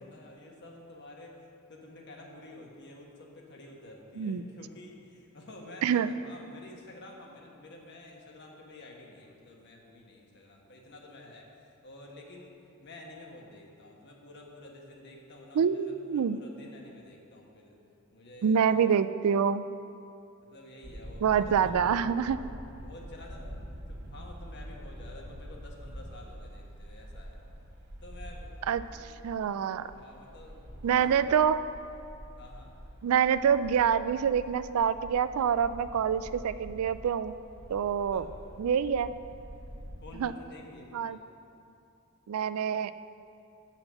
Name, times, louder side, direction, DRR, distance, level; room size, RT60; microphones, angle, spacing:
voice 1, 0.0-17.8 18.1-18.8 20.4-21.7 22.3-22.5 22.8-27.4 28.0-28.5 28.8-29.1 29.9-31.4 32.4-32.7 38.1-38.2 40.0-41.2, left 1 dB, 55° left, 0 dB, 1.3 m, -50 dB
voice 2, 4.2-4.5 5.8-6.1 15.5-16.4 18.4-19.6 21.2-22.4 28.7-29.9 30.8-31.6 33.0-37.3 37.7-38.3 38.6-39.1 40.2-40.3 40.9-41.2 42.3-42.9, right 7 dB, 85° right, 13 dB, 0.3 m, -26 dB
sound 1, 20.8-40.2, equal, 55° right, 1.4 m, -46 dB
7.8 x 5.8 x 6.8 m, 2.6 s
head